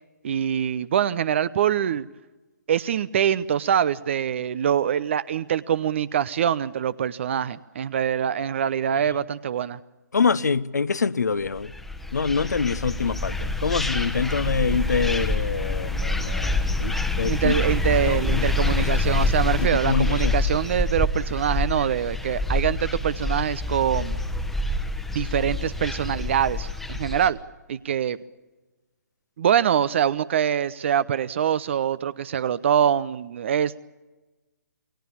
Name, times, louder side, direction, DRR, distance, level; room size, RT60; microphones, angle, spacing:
voice 1, 0.2-2.1 2.7-9.8 17.3-24.2 25.1-27.4 27.7-28.2 29.4-33.8, right 9 dB, 40° right, 0.7 m, -24 dB
voice 2, 10.1-11.7 12.1-17.5 18.1-18.5 18.8-18.9 19.6-20.4, left 5 dB, 70° left, 1.0 m, -25 dB
sound 1, 11.6-27.3, left 2 dB, ahead, 1.2 m, -26 dB
28.5 x 22.0 x 7.1 m
figure-of-eight pair, 135°, 10 cm